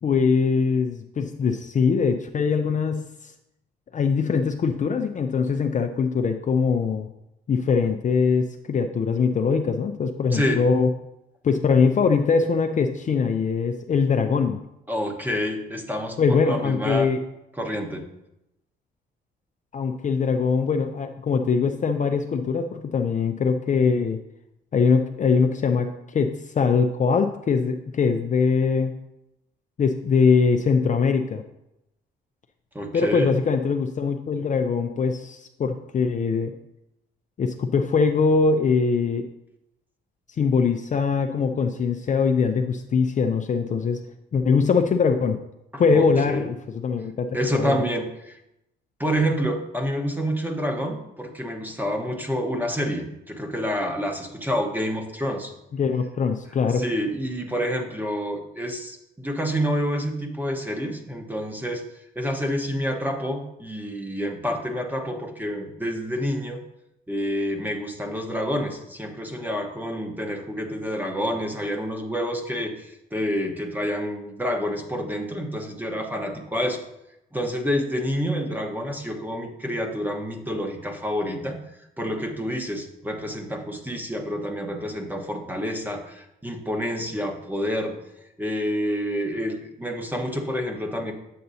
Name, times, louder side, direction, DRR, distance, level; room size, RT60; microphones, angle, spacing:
voice 1, 0.0-3.3 3.9-7.1 7.5-10.9 11.4-14.6 16.2-17.2 19.7-24.2 24.7-28.9 29.8-31.4 32.9-36.5 37.4-39.3 40.4-44.0 44.3-45.4 45.8-46.5 46.8-47.8 55.7-56.8, left 5 dB, 40° left, 6 dB, 0.5 m, -22 dB
voice 2, 14.9-17.1 17.6-18.0 32.7-33.3 45.7-46.5 47.3-48.4 49.0-55.5 56.7-61.8 62.1-66.6 67.1-76.8 77.3-81.6 82.0-87.9 88.4-91.1, equal, 10° right, 3 dB, 1.1 m, -28 dB
7.8 x 7.5 x 2.8 m, 0.87 s
cardioid pair, 90°, 20 cm